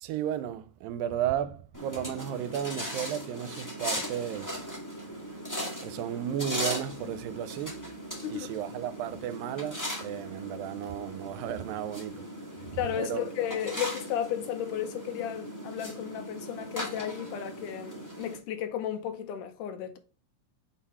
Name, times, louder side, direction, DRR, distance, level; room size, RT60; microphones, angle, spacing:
voice 1, 0.0-4.7 5.8-7.9 8.3-12.3 12.6-13.3, right 10 dB, 85° right, 2.3 m, -34 dB
sound 1, 1.7-18.4, equal, 20° left, 0.5 m, -38 dB
voice 2, 12.7-20.0, left 10 dB, 75° left, 2.0 m, -34 dB
6.2 x 3.9 x 4.2 m
omnidirectional pair, 4.0 m